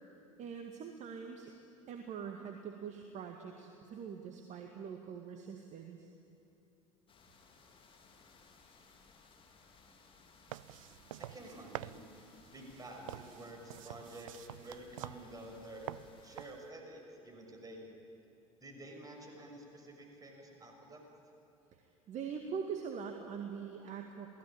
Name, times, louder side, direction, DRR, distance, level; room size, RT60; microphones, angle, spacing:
voice 1, 0.4-1.5 1.9-6.1 21.7-24.4, right 6 dB, 40° right, 4 dB, 2.0 m, -43 dB
sound 1, 7.1-16.5, left 4 dB, 30° left, 3.4 m, -62 dB
sound 2, 10.5-16.7, right 15 dB, 65° right, 0.5 m, -48 dB
voice 2, 11.2-12.0 12.5-15.9 16.2-17.8 18.6-21.0, right 1 dB, 20° right, 1 dB, 6.2 m, -50 dB
27.5 x 18.0 x 8.8 m, 2.9 s
figure-of-eight pair, 70°, 18 cm